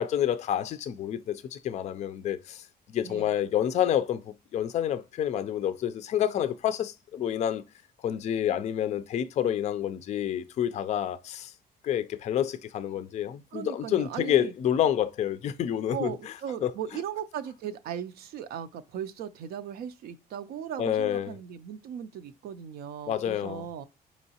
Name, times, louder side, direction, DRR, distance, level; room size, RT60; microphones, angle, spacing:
voice 1, 0.0-2.6 2.9-4.2 4.5-7.6 8.0-11.5 11.8-16.1 16.6-16.7 20.8-21.4 23.1-23.7, left 10 dB, 40° left, 0.4 m, -28 dB
voice 2, 13.5-14.5 15.9-23.9, right 9 dB, 65° right, 0.4 m, -37 dB
4.5 x 2.9 x 2.8 m
cardioid pair, 110°, 17 cm